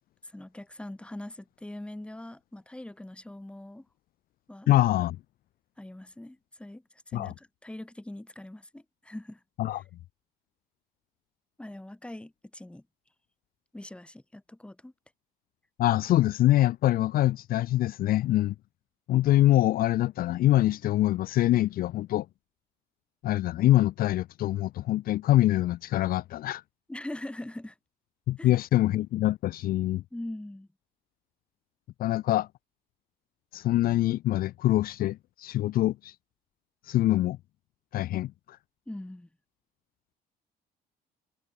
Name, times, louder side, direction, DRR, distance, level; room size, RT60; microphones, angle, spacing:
voice 1, 0.2-3.9 4.5-4.7 5.8-9.4 11.6-12.8 13.7-14.9 26.9-27.8 28.4-28.5 30.1-30.7 38.9-39.3, left 1 dB, 5° left, 2.3 m, -42 dB
voice 2, 4.7-5.2 7.1-7.3 9.6-9.8 15.8-18.5 19.1-22.3 23.2-26.6 28.3-30.0 32.0-32.5 33.5-36.1 36.9-37.4 37.9-38.6, left 14 dB, 60° left, 0.5 m, -24 dB
cardioid pair, 110°, 17 cm